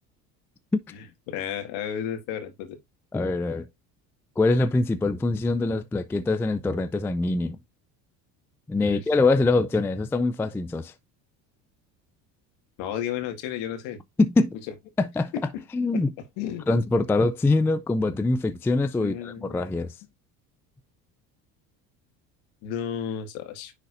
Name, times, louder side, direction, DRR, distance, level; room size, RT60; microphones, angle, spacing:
voice 1, 0.9-2.8 8.8-9.0 12.8-14.0 15.3-15.6 16.4-16.7 19.0-19.6 22.6-23.7, left 9 dB, 65° left, 2.0 m, -33 dB
voice 2, 3.1-3.7 4.4-7.6 8.7-10.9 14.2-14.6 15.0-15.3 15.7-16.1 16.7-19.9, left 3 dB, 5° left, 0.4 m, -24 dB
10.0 x 4.0 x 2.6 m
hypercardioid pair, 75°, 49 cm